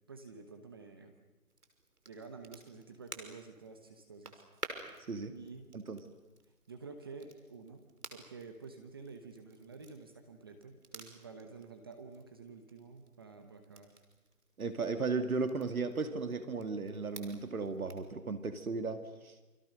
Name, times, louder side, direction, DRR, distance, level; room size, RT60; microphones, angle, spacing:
voice 1, 0.1-1.1 2.1-4.4 4.9-5.0 5.3-5.7 6.7-14.0, right 4 dB, 15° right, 5 dB, 1.0 m, -50 dB
Crackle, 1.5-18.1, right 3 dB, 85° right, 5.8 m, -53 dB
voice 2, 14.6-19.4, right 4 dB, 70° right, 8 dB, 2.4 m, -35 dB
29.0 x 25.0 x 6.6 m, 1.2 s
hypercardioid pair, 165°, 45 cm